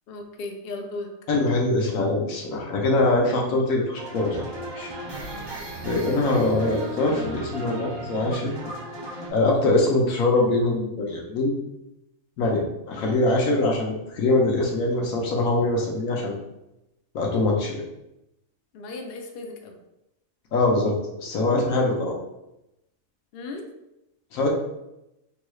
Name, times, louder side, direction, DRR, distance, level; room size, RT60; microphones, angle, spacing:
voice 1, 0.1-1.1 10.3-10.5 13.0-13.2 18.7-19.8 23.3-23.6, left 2 dB, 60° left, 3 dB, 0.6 m, -36 dB
voice 2, 1.3-4.5 4.7-4.9 5.8-8.5 9.3-11.5 12.4-16.4 17.1-17.8 20.5-22.2 24.3-24.5, left 2 dB, 80° left, -1 dB, 1.2 m, -23 dB
sound 1, 4.0-9.3, right 1 dB, 45° right, 0.3 m, -35 dB
3.7 x 2.3 x 3.1 m, 0.88 s
omnidirectional pair, 1.4 m